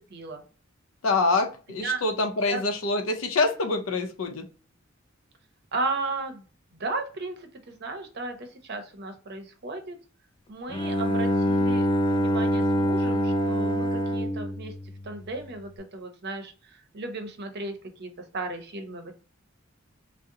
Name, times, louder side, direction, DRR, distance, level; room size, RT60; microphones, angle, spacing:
voice 1, 0.1-0.4 1.8-2.0 2.5-2.6 5.7-6.4 6.7-10.0 10.5-14.7 15.0-19.1, right 3 dB, 55° right, 5 dB, 0.7 m, -35 dB
voice 2, 1.0-4.5, left 3 dB, 85° left, 6 dB, 0.6 m, -25 dB
Bowed string instrument, 10.7-15.5, equal, 25° left, 0.3 m, -25 dB
2.7 x 2.0 x 3.6 m, 0.37 s
head